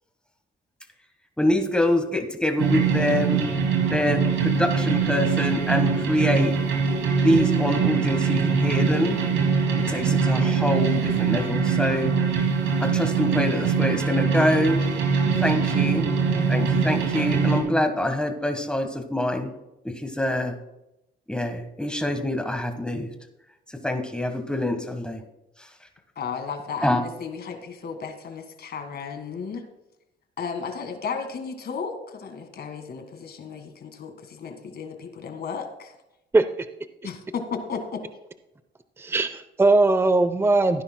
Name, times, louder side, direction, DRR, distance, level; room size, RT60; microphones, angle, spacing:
voice 1, 1.4-3.4 3.9-6.5 7.2-9.2 9.9-12.1 12.8-14.8 15.4-16.1 16.5-19.5 20.0-20.5 21.3-23.1 23.8-25.2 26.8-27.0, left 1 dB, 5° left, 5 dB, 1.4 m, -25 dB
sound 1, 2.6-17.6, right 6 dB, 85° right, 2.4 m, -23 dB
voice 2, 26.2-29.6 30.4-35.9 37.0-38.0, left 5 dB, 55° left, 6 dB, 1.8 m, -34 dB
voice 3, 39.0-40.8, right 2 dB, 10° right, 11 dB, 0.6 m, -19 dB
16.0 x 9.9 x 2.2 m, 0.91 s
cardioid pair, 90°, 20 cm